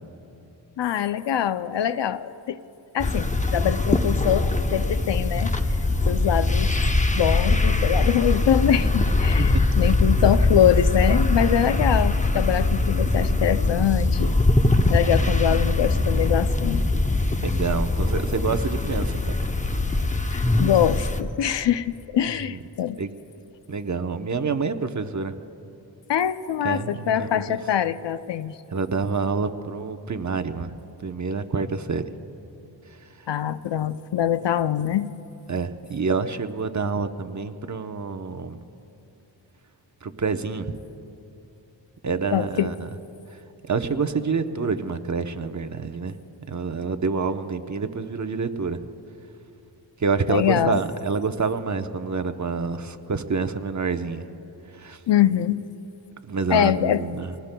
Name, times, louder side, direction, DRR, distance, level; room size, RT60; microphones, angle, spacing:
voice 1, 0.8-2.6 2.9-5.6 6.1-6.7 7.1-14.4 14.9-16.9 20.3-23.0 26.1-28.5 33.3-35.1 42.3-42.7 50.3-50.8 55.1-55.6 56.5-57.1, left 10 dB, 70° left, 14 dB, 0.6 m, -23 dB
sound 1, 3.0-21.2, left 2 dB, 15° left, 0.7 m, -22 dB
voice 2, 17.4-19.2 22.5-22.6 23.0-23.1 23.7-25.3 26.6-27.4 28.7-30.7 31.0-32.1 35.5-38.6 40.0-40.8 42.0-42.9 43.7-46.1 46.5-48.8 50.0-54.2 54.7-55.0 56.3-57.3, right 4 dB, 40° right, 8 dB, 0.8 m, -27 dB
27.0 x 19.0 x 2.3 m, 2.8 s
cardioid pair, 55°, 45 cm